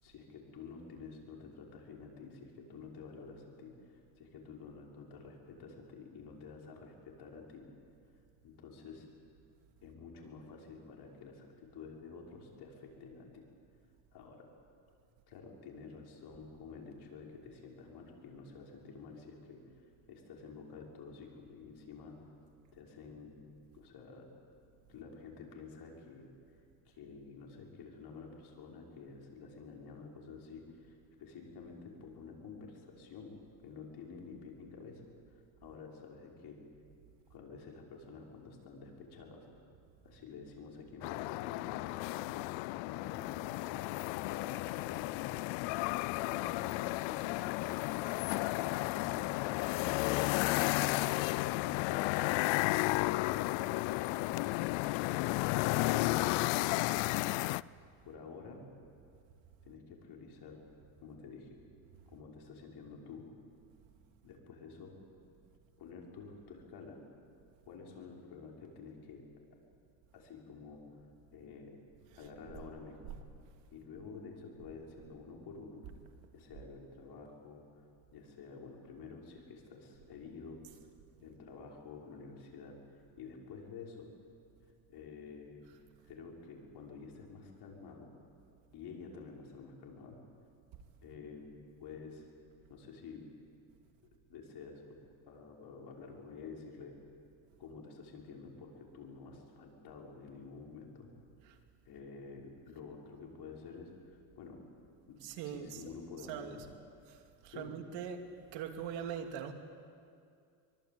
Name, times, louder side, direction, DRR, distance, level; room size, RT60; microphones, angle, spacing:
voice 1, 0.0-7.7 8.4-9.1 9.8-13.4 14.1-14.4 15.3-19.6 20.1-22.2 22.7-23.4 23.7-24.3 24.9-26.3 26.9-33.3 33.6-35.0 35.6-36.6 37.3-39.5 40.0-42.4 42.8-43.9 44.2-45.4 46.2-50.8 53.2-54.2 58.0-58.6 59.6-60.6 61.0-61.6 62.1-63.3 64.2-64.9 65.8-67.0 67.6-69.2 70.1-70.8 71.3-71.8 72.1-73.1 73.7-75.8 76.3-77.6 78.1-80.6 81.2-82.8 83.2-84.1 84.9-85.6 86.1-88.1 88.7-90.2 91.0-91.5 91.8-92.3 92.7-93.2 94.3-95.0 95.3-97.0 97.6-101.1 101.8-103.9 104.4-104.6 105.1-105.2 105.4-106.6 107.5-107.7, left 5 dB, 60° left, -1 dB, 6.1 m, -50 dB
sound 1, 41.0-57.6, left 21 dB, 80° left, 0.6 m, -33 dB
voice 2, 105.2-105.9 106.2-106.7 107.0-108.2 108.5-109.5, right 8 dB, 75° right, 5 dB, 2.8 m, -43 dB
24.0 x 24.0 x 9.0 m, 2.4 s
cardioid pair, 105°, 44 cm